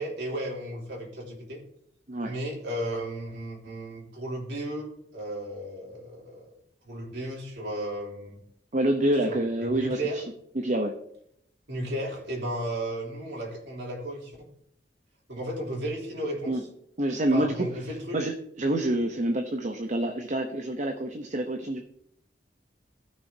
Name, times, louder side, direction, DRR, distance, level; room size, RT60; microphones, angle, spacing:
voice 1, 0.0-1.6 2.2-6.5 6.8-8.4 9.3-10.2 11.7-14.5 15.3-16.6 17.3-18.2, right 1 dB, 75° right, -3 dB, 3.3 m, -34 dB
voice 2, 8.7-10.2 10.5-10.9 16.5-16.6 17.0-17.7 18.1-21.8, right 1 dB, 45° right, 4 dB, 0.8 m, -27 dB
15.5 x 6.4 x 2.8 m, 0.74 s
head